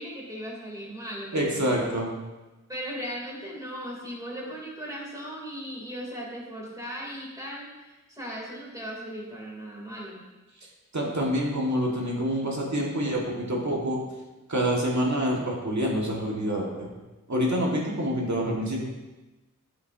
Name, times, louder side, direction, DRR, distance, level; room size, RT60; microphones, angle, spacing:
voice 1, 0.0-1.9 2.7-10.2, equal, 10° right, -4 dB, 3.0 m, -37 dB
voice 2, 1.3-2.1 10.9-14.0 14.5-16.9 17.3-18.8, equal, 60° right, -2 dB, 1.8 m, -27 dB
10.5 x 6.9 x 2.8 m, 1.1 s
wide cardioid pair, 65°, 32 cm